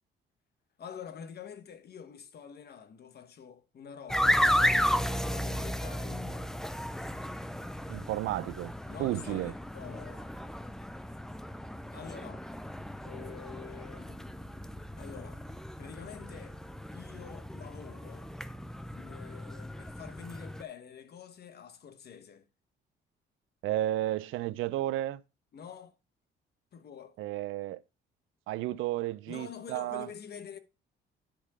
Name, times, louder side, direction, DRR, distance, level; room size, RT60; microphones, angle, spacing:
voice 1, 0.8-6.5 8.9-10.4 11.9-12.5 13.0-14.3 15.0-15.5 15.8-16.6 16.9-18.3 18.9-22.5 25.5-25.9 26.7-27.2 29.3-30.6, left 7 dB, 55° left, 1.0 m, -47 dB
sound 1, 4.1-20.6, equal, ahead, 0.5 m, -34 dB
voice 2, 7.9-8.7 9.0-9.5 23.6-25.2 27.2-27.8 28.5-30.1, right 14 dB, 85° right, 0.5 m, -32 dB
10.5 x 3.7 x 4.7 m
cardioid pair, 90°, 20 cm